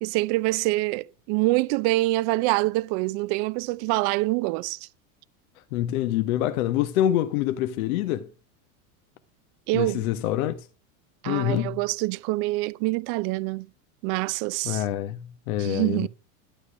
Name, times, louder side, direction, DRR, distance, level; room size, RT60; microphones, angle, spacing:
voice 1, 0.0-4.9 9.7-10.0 11.2-13.7 14.0-14.8 15.6-16.1, right 20 dB, 50° right, 0.7 m, -25 dB
voice 2, 5.7-8.3 9.7-10.7 11.2-11.8 14.6-16.1, left 12 dB, 70° left, 1.3 m, -26 dB
12.5 x 8.6 x 6.2 m
supercardioid pair, 140°, 43 cm